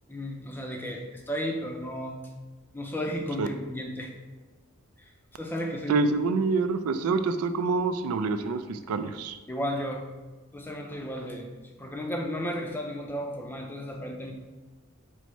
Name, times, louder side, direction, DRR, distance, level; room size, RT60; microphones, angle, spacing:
voice 1, 0.1-2.2 2.7-4.1 5.0-6.1 9.5-10.1 10.5-11.5 11.8-14.3, equal, 10° left, 2 dB, 0.4 m, -34 dB
voice 2, 5.9-9.4, right 3 dB, 90° right, 9 dB, 0.3 m, -26 dB
4.7 x 2.0 x 4.1 m, 1.2 s
head